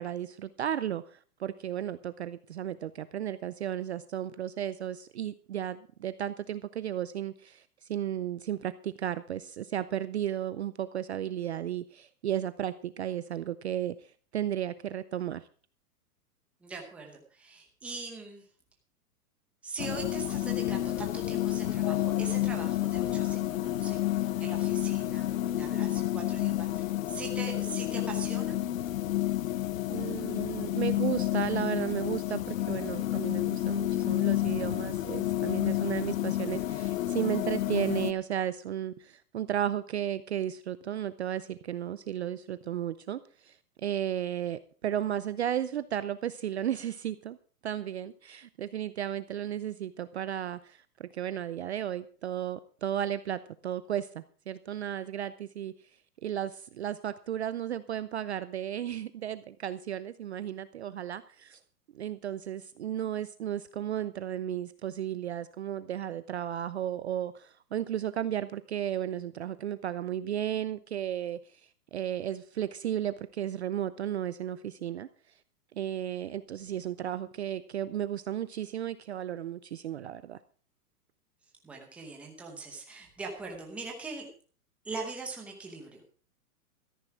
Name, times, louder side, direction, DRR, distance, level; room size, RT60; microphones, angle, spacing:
voice 1, 0.0-7.6 7.9-14.0 14.3-15.5 29.9-47.4 47.6-55.7 56.2-61.6 61.9-71.4 71.9-75.1 75.8-80.4, right 10 dB, 50° right, 14 dB, 0.5 m, -34 dB
voice 2, 16.6-18.4 19.6-28.6 81.6-84.3 84.8-86.0, right 3 dB, 5° right, 1 dB, 0.9 m, -41 dB
sound 1, 19.8-38.1, left 14 dB, 60° left, 0.7 m, -30 dB
13.5 x 10.5 x 4.8 m, 0.43 s
hypercardioid pair, 175°, 45 cm